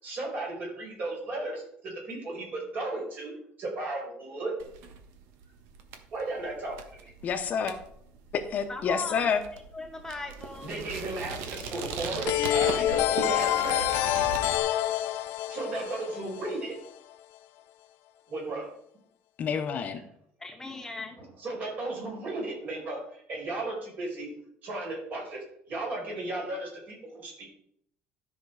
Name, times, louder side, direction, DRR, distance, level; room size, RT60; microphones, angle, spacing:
voice 1, 0.0-4.5 6.1-7.0 7.7-7.8 10.6-14.1 15.5-16.8 18.3-18.7 21.4-24.3 24.6-27.4, right 2 dB, 45° right, -1 dB, 5.2 m, -35 dB
sound 1, 4.6-14.6, right 5 dB, 90° right, 1.4 m, -40 dB
voice 2, 7.2-7.8 8.3-9.4 19.4-20.0, left 6 dB, 40° left, 8 dB, 0.9 m, -28 dB
voice 3, 8.7-10.7 20.4-21.2, left 2 dB, 10° left, 4 dB, 0.8 m, -39 dB
sound 2, 12.3-16.9, left 14 dB, 75° left, 0.6 m, -27 dB
13.0 x 5.8 x 4.8 m, 0.68 s
cardioid pair, 150°, 4 cm